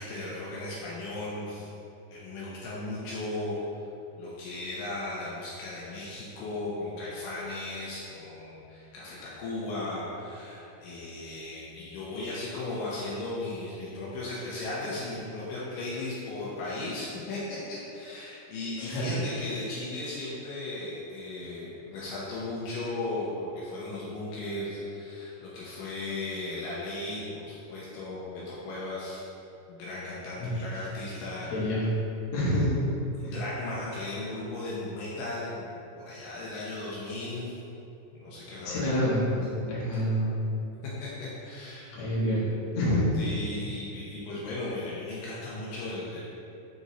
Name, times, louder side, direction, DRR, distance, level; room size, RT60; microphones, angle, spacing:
voice 1, 0.0-1.7 2.1-3.6 4.2-29.2 29.7-31.7 33.2-37.6 38.1-38.9 39.3-39.4 39.9-40.0 41.0-42.1 43.1-46.2, left 2 dB, 80° left, -7 dB, 2.5 m, -36 dB
voice 2, 18.8-19.2 30.4-30.8 31.5-31.9 32.3-32.7 33.2-33.4 38.6-40.3 41.9-42.4 42.8-43.1, equal, 60° left, -8 dB, 2.4 m, -27 dB
6.1 x 4.0 x 4.0 m, 2.8 s
omnidirectional pair, 3.9 m